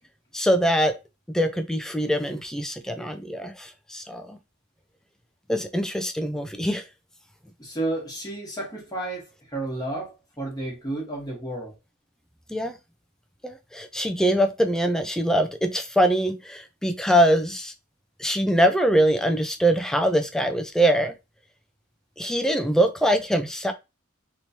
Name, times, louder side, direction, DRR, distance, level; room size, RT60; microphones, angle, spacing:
voice 1, 0.3-0.9 1.3-4.4 5.5-6.8 12.5-12.8 13.4-17.7 18.2-21.1 22.2-23.7, equal, 5° left, 0.3 m, -23 dB
voice 2, 7.6-11.7, right 2 dB, 20° left, 1.3 m, -32 dB
3.0 x 3.0 x 2.7 m
head